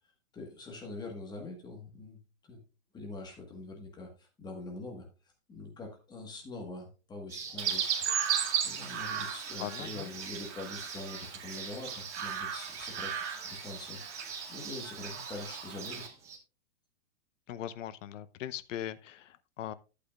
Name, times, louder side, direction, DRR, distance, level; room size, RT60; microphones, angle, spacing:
voice 1, 0.3-2.6 2.9-5.1 5.5-8.0 8.6-16.1, left 2 dB, 10° left, 1.4 m, -44 dB
sound 1, 7.3-16.4, right 5 dB, 10° right, 0.4 m, -44 dB
Chirp tweet, 7.6-16.1, right 8 dB, 60° right, 2.1 m, -36 dB
voice 2, 9.6-10.1 17.5-19.7, left 11 dB, 70° left, 0.8 m, -40 dB
11.5 x 8.4 x 2.4 m
hypercardioid pair, 160°, 39 cm